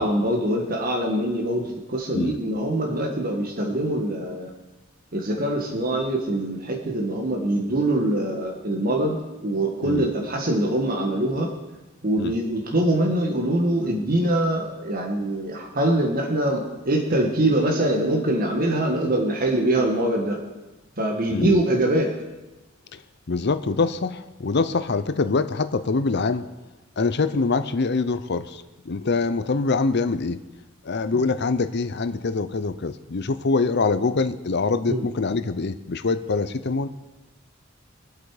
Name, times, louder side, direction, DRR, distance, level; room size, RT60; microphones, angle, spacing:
voice 1, 0.0-4.5 5.1-9.2 9.4-11.5 12.0-20.4 21.0-22.1 34.9-35.0, right 1 dB, 45° right, 1 dB, 1.6 m, -23 dB
voice 2, 21.3-21.6 22.9-23.0 23.3-26.4 27.0-30.4 30.8-36.9, left 4 dB, 55° left, 12 dB, 0.7 m, -24 dB
23.5 x 8.2 x 5.0 m, 1.1 s
head